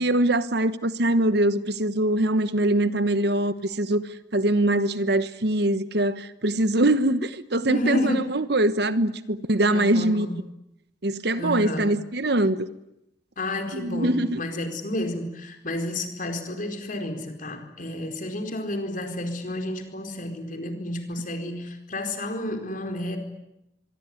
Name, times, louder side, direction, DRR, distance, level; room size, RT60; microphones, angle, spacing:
voice 1, 0.0-4.0 4.3-10.3 11.0-12.7 13.7-14.4, right 1 dB, 60° right, 1.2 m, -23 dB
voice 2, 7.7-8.3 9.7-10.4 11.4-12.0 13.4-23.2, left 1 dB, 45° left, 4.6 m, -30 dB
24.5 x 23.5 x 9.7 m
head